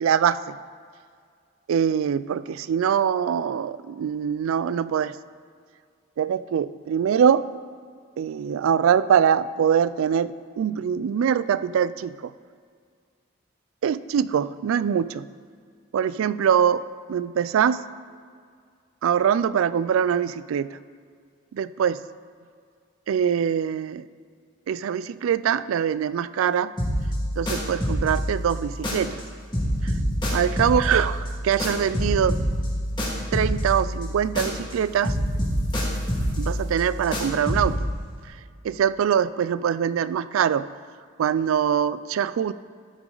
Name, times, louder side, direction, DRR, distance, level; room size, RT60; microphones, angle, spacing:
voice 1, 0.0-0.6 1.7-5.2 6.2-7.4 8.2-12.3 13.8-15.2 15.9-16.8 17.1-17.8 19.0-20.7 21.5-22.0 23.1-24.0 24.7-26.7 27.4-29.2 29.8-29.9 30.3-32.4 33.3-35.2 36.4-37.8 38.6-40.7 41.2-42.5, right 8 dB, 85° right, 16 dB, 0.3 m, -23 dB
sound 1, 26.8-29.3 29.5-34.8 35.0-37.8, equal, 25° left, 2.0 m, -27 dB
13.5 x 6.2 x 3.9 m, 2.1 s
head